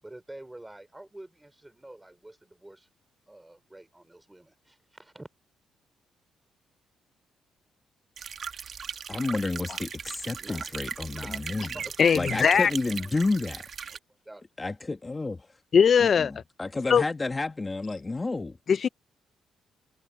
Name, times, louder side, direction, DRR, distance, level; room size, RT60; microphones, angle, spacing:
voice 1, 0.0-2.9 3.3-5.3 10.3-11.4 11.7-13.3 13.8-14.0 14.2-14.5, right 1 dB, 10° right, 4.7 m, -48 dB
sound 1, 8.2-14.0, right 7 dB, 50° right, 1.5 m, -38 dB
voice 2, 9.1-11.7 12.1-13.7 14.6-15.6 16.0-18.6, left 3 dB, 20° left, 1.4 m, -31 dB
voice 3, 12.0-12.7 15.7-16.3 16.9-17.0 18.7-18.9, left 7 dB, 50° left, 0.4 m, -20 dB
cardioid pair, 90°, 0 cm